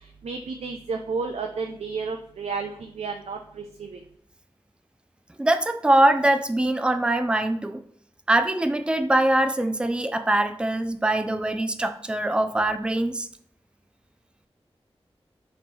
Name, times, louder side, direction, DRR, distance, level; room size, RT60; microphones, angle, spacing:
voice 1, 0.2-3.4 3.8-3.9, right 4 dB, 85° right, 0.4 m, -31 dB
voice 2, 5.4-7.8 8.3-13.3, right 1 dB, 10° right, 0.4 m, -23 dB
4.2 x 2.9 x 3.1 m
cardioid pair, 45°, 11 cm